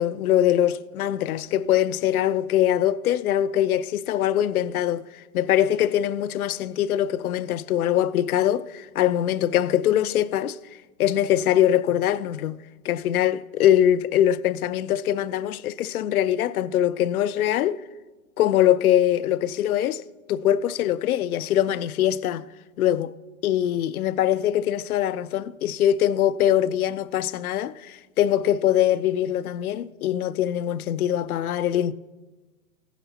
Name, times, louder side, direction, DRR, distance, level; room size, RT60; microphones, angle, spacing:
voice 1, 0.0-10.6 11.0-17.8 18.4-22.5 22.8-23.1 23.4-31.9, left 11 dB, 75° left, 0.5 m, -23 dB
14.5 x 10.0 x 2.8 m
hypercardioid pair, 140°, 44 cm